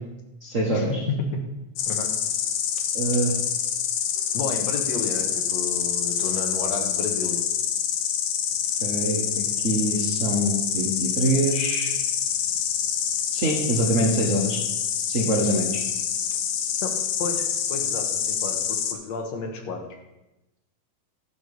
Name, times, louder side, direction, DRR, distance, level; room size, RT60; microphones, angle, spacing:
voice 1, 0.4-1.0 2.9-3.3 8.8-11.9 13.3-14.6 15.1-15.8, right 1 dB, 85° right, -1 dB, 0.7 m, -24 dB
Insect, 1.8-18.9, left 9 dB, 85° left, 2.4 m, -26 dB
voice 2, 4.3-7.4 16.8-16.9 17.2-19.8, left 4 dB, 65° left, 3 dB, 2.3 m, -32 dB
11.5 x 6.8 x 5.3 m, 0.96 s
omnidirectional pair, 3.5 m